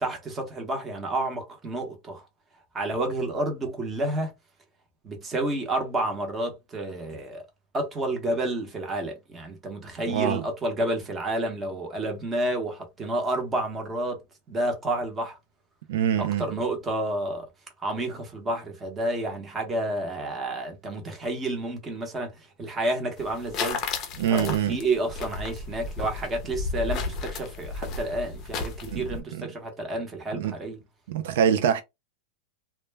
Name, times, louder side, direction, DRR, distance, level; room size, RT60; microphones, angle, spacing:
voice 1, 0.0-2.3 2.7-4.3 5.0-7.4 7.7-14.2 14.5-15.4 16.2-17.5 17.8-23.8 24.3-30.8, right 1 dB, 15° right, 0.8 m, -30 dB
voice 2, 10.1-10.4 15.9-16.6 24.2-24.8 28.9-29.0 29.4-29.5 30.3-30.5 31.1-31.8, right 8 dB, 65° right, 0.4 m, -24 dB
sound 1, 23.2-29.2, left 4 dB, 30° left, 0.6 m, -33 dB
2.1 x 2.1 x 3.3 m
supercardioid pair, 160°, 0 cm